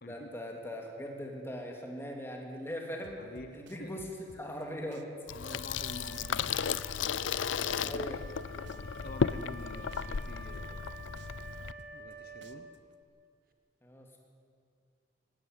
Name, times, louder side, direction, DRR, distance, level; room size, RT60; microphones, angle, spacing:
voice 1, 0.1-3.2 3.5-4.0 4.4-5.0 7.8-8.2 13.8-14.2, equal, 15° left, 1 dB, 2.6 m, -40 dB
sound 1, 3.0-4.6 4.9-7.1 7.4-9.6 9.9-12.1 12.4-13.0, right 2 dB, 70° right, 1.0 m, -55 dB
voice 2, 3.2-4.0 5.3-6.6 7.8-8.0 8.3-11.1 11.9-12.7, left 2 dB, 50° left, 6 dB, 1.0 m, -48 dB
Water tap faucet / Sink (filling or washing), 5.3-11.7, left 6 dB, 90° left, 0.5 m, -34 dB
Wind instrument woodwind instrument, 5.4-13.0, right 2 dB, 50° right, 1.4 m, -49 dB
17.5 x 17.0 x 9.2 m, 2.3 s
head